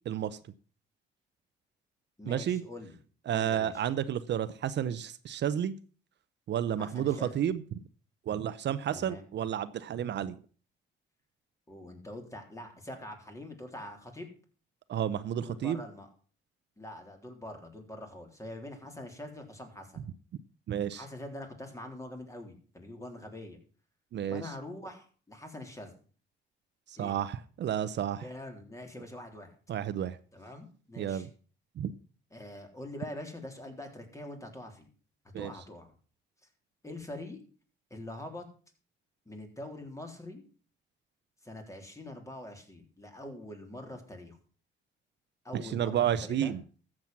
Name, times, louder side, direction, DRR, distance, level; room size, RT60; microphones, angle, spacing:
voice 1, 0.1-0.4 2.3-2.6 3.3-5.7 6.5-7.6 8.3-10.4 14.9-15.8 20.7-21.0 24.1-24.4 26.9-28.2 29.7-30.2 31.0-31.3 31.8-31.9 35.3-35.5 45.5-46.6, right 10 dB, 65° right, 13 dB, 0.8 m, -31 dB
voice 2, 2.2-3.0 3.3-3.8 6.8-7.4 8.9-9.2 11.7-14.3 15.4-16.1 16.8-20.1 20.9-23.6 24.3-25.9 27.0-27.1 28.2-29.5 30.3-31.3 32.3-34.9 35.4-35.9 36.8-37.4 37.9-38.4 39.3-40.4 41.4-44.4 45.4-46.6, left 1 dB, 15° left, 4 dB, 3.7 m, -44 dB
13.5 x 7.6 x 6.0 m, 0.40 s
cardioid pair, 90°, 20 cm